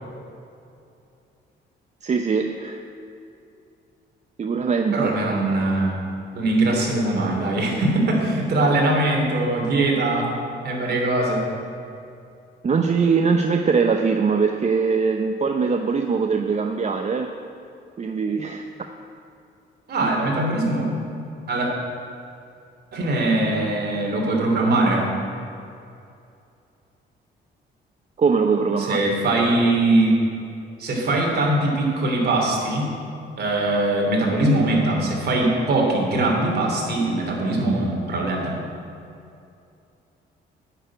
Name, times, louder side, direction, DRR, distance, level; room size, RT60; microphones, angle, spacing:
voice 1, 2.0-2.8 4.4-5.4 12.6-17.3 18.0-18.6 20.2-20.3 28.2-29.0, right 5 dB, 35° right, 5 dB, 0.6 m, -22 dB
voice 2, 4.9-5.9 6.3-10.3 10.6-11.4 19.9-21.0 21.5-21.7 22.9-25.1 28.8-30.1 30.8-32.9 33.4-38.5, right 2 dB, 55° right, -1 dB, 3.0 m, -21 dB
9.9 x 6.6 x 8.9 m, 2.6 s
cardioid pair, 90°, 20 cm